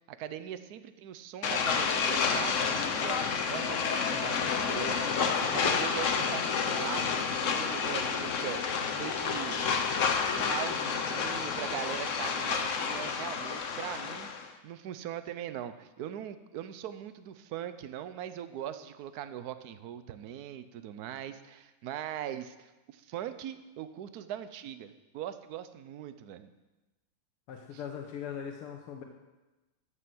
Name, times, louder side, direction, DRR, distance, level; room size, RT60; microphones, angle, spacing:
voice 1, 0.1-9.6 10.3-14.3 14.6-26.5 27.7-27.8, right 10 dB, 70° right, 11 dB, 0.9 m, -41 dB
sound 1, 1.4-14.5, left 6 dB, 55° left, 0.9 m, -30 dB
voice 2, 27.5-29.0, left 8 dB, 85° left, 2 dB, 2.0 m, -40 dB
14.0 x 6.6 x 7.8 m, 1.1 s
omnidirectional pair, 2.4 m